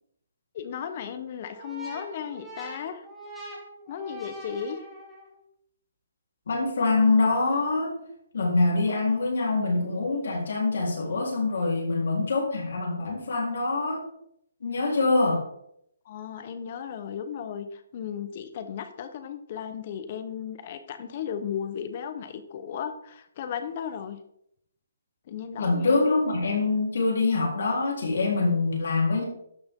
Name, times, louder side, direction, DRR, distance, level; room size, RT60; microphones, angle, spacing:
voice 1, 0.5-3.0 3.9-4.8 16.0-24.2 25.3-26.1, left 8 dB, 40° left, 9 dB, 1.1 m, -35 dB
sound 1, 1.5-5.4, right 1 dB, ahead, 2.3 m, -43 dB
voice 2, 6.5-7.9 8.3-14.0 14.6-15.4 25.6-29.2, left 3 dB, 70° left, -1 dB, 4.1 m, -24 dB
12.5 x 6.2 x 3.8 m, 0.72 s
hypercardioid pair, 160°, 0 cm